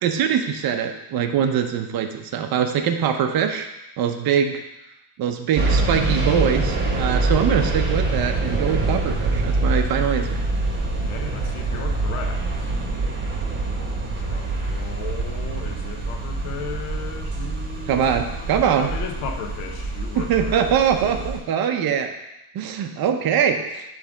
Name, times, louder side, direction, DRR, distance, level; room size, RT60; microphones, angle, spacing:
voice 1, 0.0-3.7 4.0-4.6 5.2-10.4 17.9-18.9 20.1-22.1 22.5-23.8, right 8 dB, 50° right, 6 dB, 0.8 m, -22 dB
sound 1, 5.6-21.4, right 2 dB, 25° right, 2.8 m, -25 dB
voice 2, 10.7-12.9 14.1-20.7 21.0-21.3, left 7 dB, 90° left, 5 dB, 1.1 m, -36 dB
9.9 x 3.4 x 5.1 m, 0.91 s
cardioid pair, 160°, 48 cm